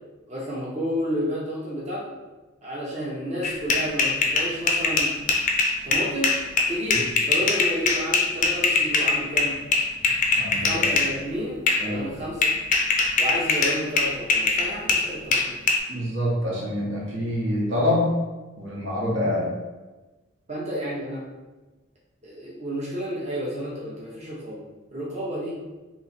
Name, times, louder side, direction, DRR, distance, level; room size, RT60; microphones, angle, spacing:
voice 1, 0.3-2.1 2.6-5.1 5.8-6.3 6.7-9.5 10.7-12.5 13.2-15.6 20.5-21.2 22.2-24.7 24.9-25.5, equal, 35° right, -6 dB, 0.8 m, -31 dB
sound 1, 3.4-11.1 11.7-11.9 12.4-15.8, left 3 dB, 40° left, 0.4 m, -22 dB
voice 2, 10.4-10.8 11.8-12.1 15.9-18.1 18.6-19.5, left 1 dB, 70° right, -4 dB, 1.1 m, -26 dB
3.1 x 2.9 x 4.2 m, 1.2 s
head